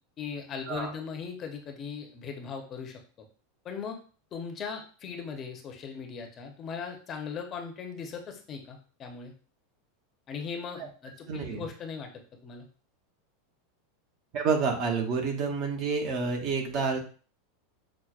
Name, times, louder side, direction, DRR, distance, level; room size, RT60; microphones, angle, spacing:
voice 1, 0.2-3.0 3.6-4.0 4.3-9.3 10.3-12.1 12.4-12.7, left 6 dB, 30° left, 3 dB, 0.7 m, -38 dB
voice 2, 11.3-11.7 14.3-17.0, right 5 dB, 45° right, 3 dB, 0.8 m, -29 dB
5.8 x 2.1 x 2.4 m, 0.40 s
supercardioid pair, 140°, 0 cm